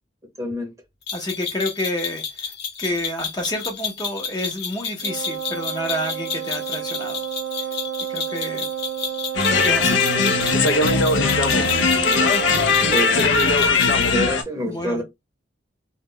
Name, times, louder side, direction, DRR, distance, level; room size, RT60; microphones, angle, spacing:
voice 1, 0.4-0.7 12.0-12.2 12.9-13.4 14.0-15.0, equal, 15° right, 0.6 m, -27 dB
sound 1, 1.1-14.1, left 6 dB, 60° left, 0.8 m, -31 dB
voice 2, 1.1-2.5 2.8-7.2 8.1-8.7 9.5-10.0 14.6-15.0, left 1 dB, 20° left, 0.5 m, -29 dB
Wind instrument woodwind instrument, 5.0-13.2, right 10 dB, 80° right, 0.4 m, -30 dB
Saxophone plays at a Romanian spring festival, 9.3-14.4, left 4 dB, 90° left, 0.5 m, -19 dB
2.1 x 2.0 x 3.6 m
head